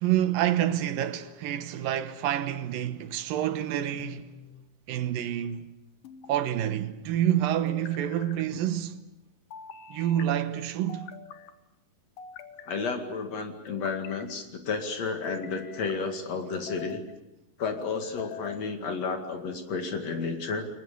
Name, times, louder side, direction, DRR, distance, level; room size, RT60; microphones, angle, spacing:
voice 1, 0.0-4.4 4.9-5.7 6.3-9.0 9.9-11.1, right 11 dB, 80° right, 2.8 m, -28 dB
sound 1, 4.0-4.7 6.0-6.8 7.7-8.4 9.5-10.3 10.9-11.5 12.2-13.0 13.7-14.3 15.0-16.0 16.5-17.1 17.8-18.6, left 9 dB, 75° left, 3.0 m, -45 dB
voice 2, 12.7-17.0 17.6-20.7, left 4 dB, 50° left, 3.1 m, -32 dB
30.0 x 22.0 x 6.8 m
omnidirectional pair, 4.1 m